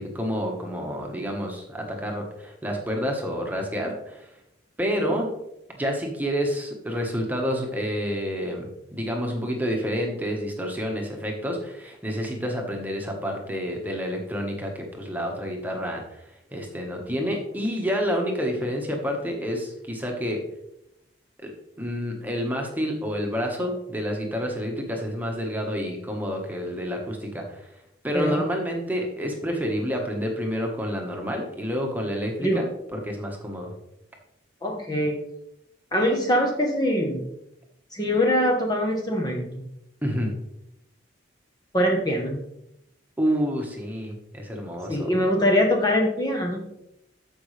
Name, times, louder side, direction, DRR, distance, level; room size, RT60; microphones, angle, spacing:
voice 1, 0.0-4.3 4.8-5.3 5.8-20.4 21.4-21.5 21.8-27.7 28.0-33.7 40.0-40.3 43.2-45.2, equal, 10° right, 1 dB, 1.4 m, -29 dB
voice 2, 28.1-28.4 32.4-32.6 34.6-35.2 35.9-37.2 37.9-39.6 41.7-42.4 44.9-46.7, equal, 20° left, 0 dB, 1.1 m, -23 dB
14.0 x 5.4 x 3.3 m, 0.83 s
head